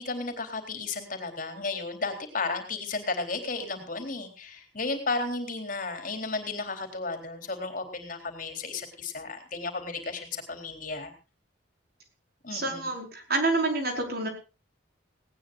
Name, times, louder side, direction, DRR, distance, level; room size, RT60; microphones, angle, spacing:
voice 1, 0.0-11.1 12.4-12.9, left 3 dB, 45° left, 7 dB, 3.8 m, -33 dB
voice 2, 12.5-14.3, right 2 dB, 55° right, 4 dB, 5.1 m, -28 dB
19.0 x 18.5 x 2.5 m, 0.31 s
head